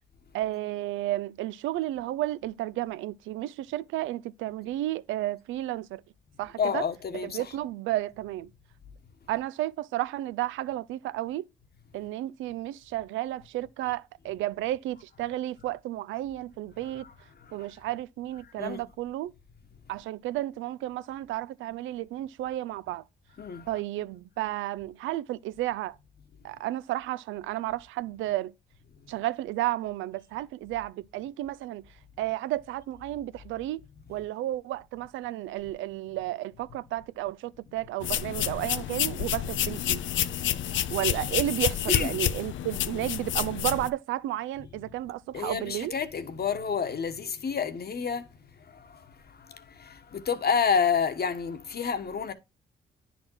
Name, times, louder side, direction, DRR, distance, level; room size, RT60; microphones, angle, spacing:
voice 1, 0.3-6.0 6.4-6.8 7.1-8.5 9.3-11.4 11.9-17.1 17.5-19.3 19.9-23.0 23.7-26.0 26.4-28.5 29.1-31.9 32.2-33.8 34.1-40.0 40.9-45.9, right 15 dB, 85° right, 0.5 m, -32 dB
voice 2, 6.6-7.4 18.6-18.8 23.4-23.7 40.3-40.5 41.9-42.1 45.3-48.3 48.7-52.3, left 6 dB, 55° left, 1.3 m, -29 dB
sound 1, 38.0-43.9, left 11 dB, 80° left, 0.6 m, -29 dB
9.8 x 4.2 x 4.5 m
supercardioid pair, 55°, 19 cm